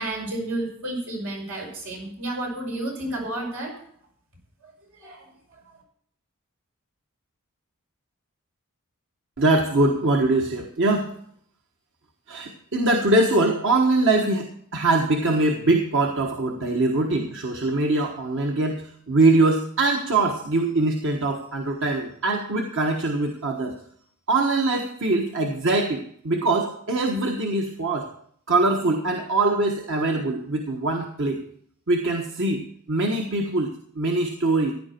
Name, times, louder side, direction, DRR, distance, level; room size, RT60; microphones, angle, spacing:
voice 1, 0.0-3.8 4.6-4.7 5.0-5.6, right 1 dB, 85° right, 0 dB, 5.8 m, -31 dB
voice 2, 9.4-11.2 12.3-23.7 24.3-28.1 28.5-31.4 31.9-33.7 33.9-34.7, right 2 dB, 60° right, 1 dB, 1.4 m, -23 dB
15.5 x 10.5 x 4.5 m, 0.63 s
head